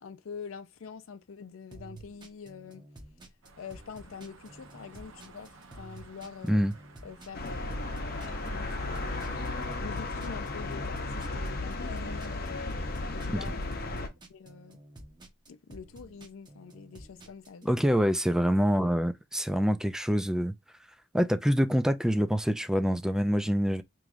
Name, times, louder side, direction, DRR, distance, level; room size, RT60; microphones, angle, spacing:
voice 1, 0.0-2.9 3.6-6.6 7.0-7.6 8.5-9.3 9.8-12.6 13.1-14.8 15.5-17.7, left 6 dB, 85° left, 0.5 m, -45 dB
sound 1, 1.7-17.6, right 2 dB, 20° right, 0.8 m, -50 dB
sound 2, 3.4-9.8, right 3 dB, 75° right, 0.9 m, -52 dB
sound 3, 7.3-14.1, left 2 dB, 50° left, 0.8 m, -34 dB
voice 2, 17.6-20.5 21.1-23.8, equal, 5° right, 0.3 m, -25 dB
4.7 x 3.1 x 2.5 m
head